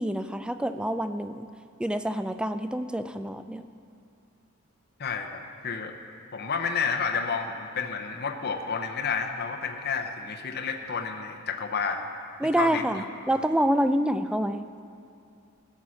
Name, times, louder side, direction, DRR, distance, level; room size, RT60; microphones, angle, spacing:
voice 1, 0.0-1.5 1.8-3.6 12.4-14.7, right 1 dB, 5° right, 9 dB, 0.3 m, -27 dB
voice 2, 5.0-6.0 6.3-12.0 12.6-13.0, left 5 dB, 50° left, 4 dB, 0.7 m, -30 dB
15.5 x 7.2 x 6.3 m, 2.4 s
head